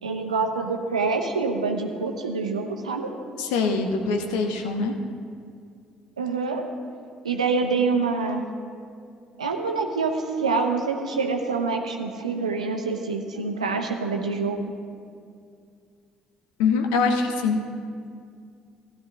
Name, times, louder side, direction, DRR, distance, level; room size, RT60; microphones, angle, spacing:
voice 1, 0.0-3.1 6.2-6.7 7.2-8.4 9.4-14.6, right 4 dB, 85° right, 4 dB, 0.7 m, -26 dB
voice 2, 3.4-4.9 16.6-17.6, left 4 dB, 70° left, 4 dB, 1.0 m, -23 dB
16.0 x 11.5 x 2.6 m, 2.3 s
figure-of-eight pair, 50°, 4 cm